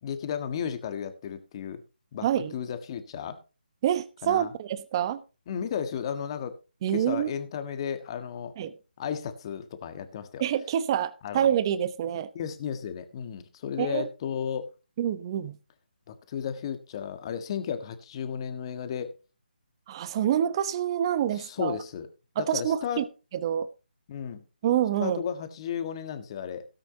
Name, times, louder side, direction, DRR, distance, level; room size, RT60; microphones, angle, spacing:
voice 1, 0.0-1.8 2.1-3.4 4.2-4.5 5.5-6.6 6.9-8.5 9.0-10.4 11.2-11.5 12.3-14.7 16.1-19.1 21.3-22.1 22.4-23.0 24.1-24.4 25.0-26.7, left 8 dB, 30° left, 1.6 m, -34 dB
voice 2, 2.2-2.5 3.8-5.2 6.8-7.3 8.6-8.7 10.4-12.3 13.8-14.1 15.0-15.6 19.9-21.8 22.4-23.0 23.4-23.7 24.6-25.2, right 10 dB, 25° right, 1.0 m, -27 dB
17.5 x 8.8 x 2.8 m
figure-of-eight pair, 155°, 5 cm